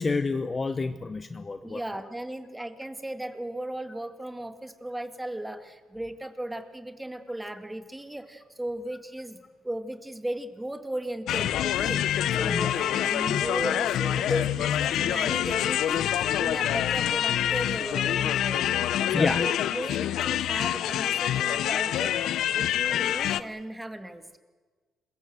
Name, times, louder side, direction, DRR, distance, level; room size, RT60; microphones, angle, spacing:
voice 1, 0.0-1.8 12.5-12.7 14.3-14.4 19.1-19.4 23.1-23.2, left 3 dB, 25° left, 10 dB, 0.8 m, -28 dB
voice 2, 1.6-9.4 9.6-24.4, right 1 dB, 10° right, 7 dB, 2.0 m, -36 dB
sound 1, 11.3-23.4, left 11 dB, 75° left, 0.8 m, -26 dB
26.5 x 22.0 x 7.9 m, 1.4 s
cardioid pair, 115°, 0 cm